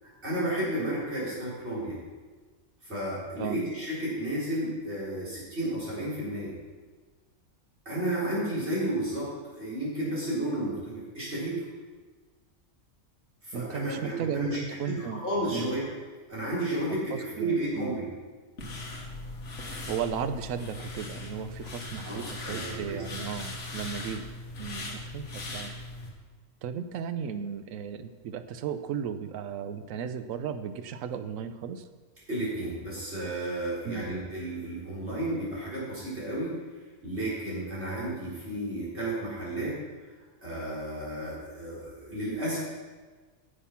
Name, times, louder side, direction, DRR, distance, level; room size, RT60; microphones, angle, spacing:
voice 1, 0.0-2.0 2.8-6.5 7.9-11.7 13.4-14.6 14.8-15.8 16.3-18.1 22.0-23.0 32.3-36.6 37.0-39.8 40.4-42.6, right 1 dB, 45° right, -7 dB, 4.4 m, -32 dB
voice 2, 13.5-15.2 15.5-15.7 17.1-17.9 19.9-24.3 24.6-25.7 26.6-31.9 33.8-34.1, right 7 dB, 70° right, 10 dB, 1.0 m, -35 dB
sound 1, 18.6-26.1, left 2 dB, 55° left, 1.9 m, -39 dB
9.9 x 7.8 x 5.8 m, 1.4 s
omnidirectional pair, 1.6 m